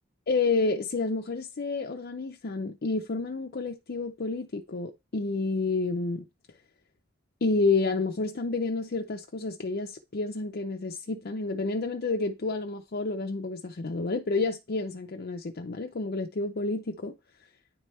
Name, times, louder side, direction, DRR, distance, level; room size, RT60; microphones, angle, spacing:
voice 1, 0.3-6.2 7.4-17.1, left 3 dB, 55° left, 0.6 m, -29 dB
10.0 x 3.4 x 4.2 m
head